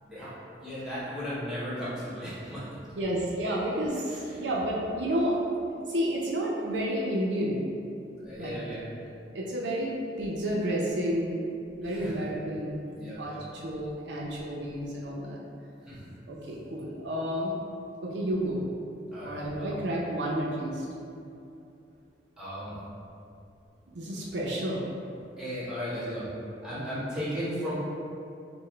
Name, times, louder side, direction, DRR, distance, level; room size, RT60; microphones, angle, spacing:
voice 1, 0.0-2.7 4.0-4.6 7.1-7.2 8.2-8.8 11.8-12.3 12.9-13.4 15.9-16.0 19.1-19.8 22.4-22.7 25.4-26.3 26.6-27.7, equal, 5° right, -12 dB, 1.3 m, -36 dB
voice 2, 3.0-5.4 5.9-7.6 8.4-8.6 9.3-11.4 11.8-12.8 13.2-15.4 16.3-17.5 18.0-18.7 19.2-20.9 23.9-24.8, equal, 70° right, -3 dB, 0.5 m, -30 dB
5.8 x 2.1 x 3.2 m, 2.6 s
head